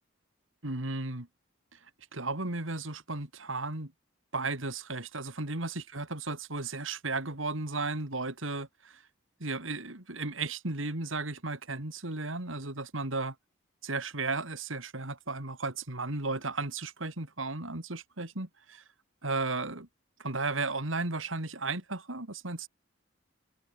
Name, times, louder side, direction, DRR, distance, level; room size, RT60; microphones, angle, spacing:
voice 1, 0.6-1.3 2.1-3.9 4.3-9.0 9.4-13.4 13.8-18.8 19.2-19.9 20.2-22.7, right 3 dB, 85° right, 3.5 m, -34 dB
head